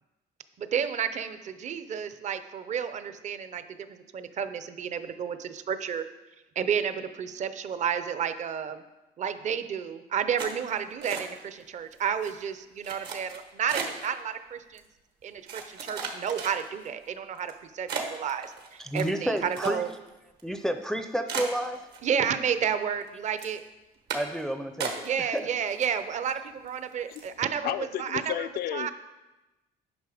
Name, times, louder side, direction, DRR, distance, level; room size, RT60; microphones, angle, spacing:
voice 1, 0.6-3.6 3.9-6.0 6.6-8.8 9.2-14.8 15.2-19.9 22.0-23.6 25.0-27.7 28.0-28.3 28.7-28.9, right 7 dB, 45° right, 11 dB, 0.6 m, -31 dB
sound 1, 10.4-11.6 11.9-12.3 12.8-14.1 14.8-14.9 15.5-16.9 17.4-17.5 17.9-20.1 20.4-20.5 20.8-20.9 21.3-22.3 22.7-23.1 23.4-23.6 24.1-24.4 24.8-25.4 25.7-26.3 26.7-26.8 27.1-27.4, right 6 dB, 75° right, 1.4 m, -36 dB
voice 2, 18.8-19.8 20.4-21.8 24.1-25.5, right 1 dB, ahead, 7 dB, 0.5 m, -30 dB
voice 3, 27.6-28.9, left 11 dB, 65° left, 12 dB, 0.4 m, -32 dB
9.5 x 5.7 x 4.9 m, 1.0 s
cardioid pair, 110°, 17 cm